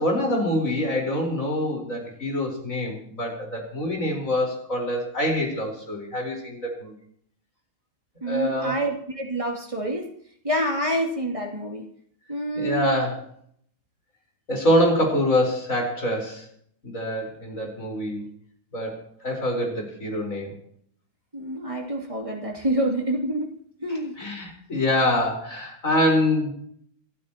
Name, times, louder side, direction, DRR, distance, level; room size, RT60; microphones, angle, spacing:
voice 1, 0.0-6.9 8.2-8.8 12.5-13.2 14.5-16.5 16.8-18.3 18.7-20.5 23.9-26.5, left 1 dB, 35° left, 0 dB, 4.9 m, -25 dB
voice 2, 8.2-10.1 10.4-11.8 12.3-12.9 21.3-24.1, right 1 dB, 15° right, 0 dB, 2.7 m, -27 dB
27.5 x 12.5 x 3.0 m, 0.64 s
omnidirectional pair, 2.4 m